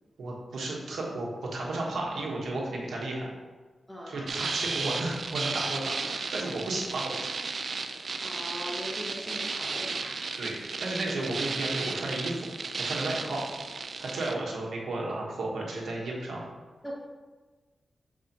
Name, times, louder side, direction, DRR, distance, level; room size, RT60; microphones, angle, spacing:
voice 1, 0.2-3.3 4.1-7.2 10.4-12.5 12.8-13.4 14.0-16.4, right 2 dB, 85° right, -3 dB, 1.3 m, -33 dB
voice 2, 3.9-4.3 8.2-10.1 16.8-16.9, equal, 5° left, -4 dB, 1.0 m, -40 dB
sound 1, 4.3-14.3, right 4 dB, 60° right, 0.4 m, -34 dB
6.7 x 4.8 x 3.0 m, 1.3 s
cardioid pair, 70°, 0 cm